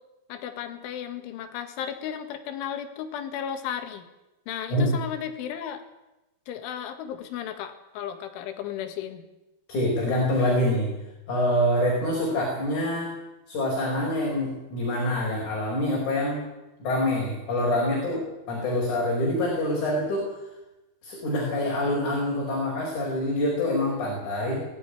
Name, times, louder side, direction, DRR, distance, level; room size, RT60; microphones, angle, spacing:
voice 1, 0.3-4.0 4.5-5.8 6.5-9.2, left 9 dB, 85° left, 7 dB, 4.2 m, -34 dB
voice 2, 9.7-10.9 11.3-13.1 13.5-16.4 16.8-20.3 21.0-24.7, left 1 dB, 40° left, -2 dB, 6.1 m, -26 dB
21.0 x 13.5 x 9.9 m, 1.0 s
omnidirectional pair, 5.4 m